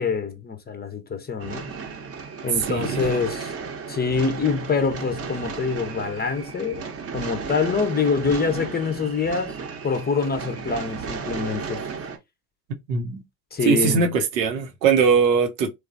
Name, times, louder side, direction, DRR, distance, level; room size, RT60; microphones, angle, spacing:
voice 1, 0.0-1.7 2.4-3.5 3.9-6.8 7.1-9.5 9.8-11.8 13.5-14.0, left 5 dB, 20° left, 0.6 m, -25 dB
sound 1, 1.4-12.2, right 5 dB, 30° right, 0.8 m, -34 dB
voice 2, 2.7-3.1 12.9-13.2 13.6-15.7, right 5 dB, 85° right, 0.8 m, -21 dB
3.1 x 2.3 x 2.5 m
hypercardioid pair, 65°, 49 cm